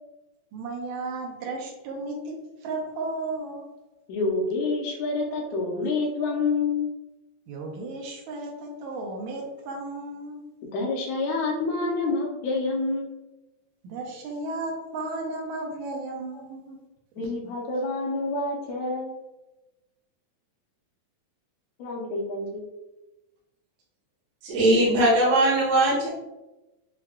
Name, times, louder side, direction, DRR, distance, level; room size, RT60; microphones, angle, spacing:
voice 1, 0.5-3.7 7.5-10.5 13.8-16.8 17.4-17.5, right 2 dB, 85° right, 0 dB, 2.1 m, -34 dB
voice 2, 4.1-6.9 10.7-13.1 17.2-19.1 21.8-22.6, left 3 dB, 75° left, -2 dB, 1.8 m, -27 dB
voice 3, 24.4-26.1, right 1 dB, 70° right, -5 dB, 1.9 m, -20 dB
6.5 x 2.3 x 2.4 m, 1.0 s
omnidirectional pair, 3.3 m